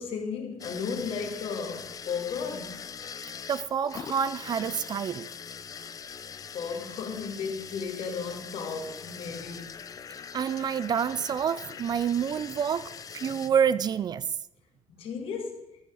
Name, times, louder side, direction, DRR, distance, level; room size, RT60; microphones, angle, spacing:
voice 1, 0.0-2.8 6.5-9.8 14.9-15.7, left 5 dB, 60° left, 2.4 m, -34 dB
sound 1, 0.6-13.5, left 7 dB, 35° left, 0.5 m, -42 dB
voice 2, 3.5-5.3 10.3-14.2, right 8 dB, 40° right, 0.4 m, -28 dB
13.5 x 7.7 x 4.9 m
cardioid pair, 135°, 11 cm